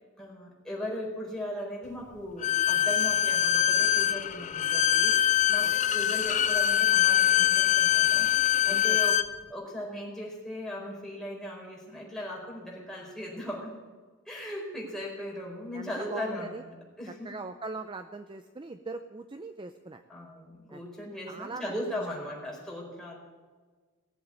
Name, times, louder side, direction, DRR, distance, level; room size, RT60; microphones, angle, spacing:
voice 1, 0.2-9.2 9.5-13.7 14.3-16.6 17.0-17.3 20.1-23.2, left 1 dB, ahead, -4 dB, 4.6 m, -38 dB
Bowed string instrument, 2.4-9.3, left 11 dB, 35° left, 0.5 m, -24 dB
voice 2, 8.7-9.0 15.7-16.6 17.1-20.0 20.7-20.8 21.3-22.3, right 3 dB, 25° right, 8 dB, 0.5 m, -41 dB
18.5 x 7.8 x 8.6 m, 1.4 s
head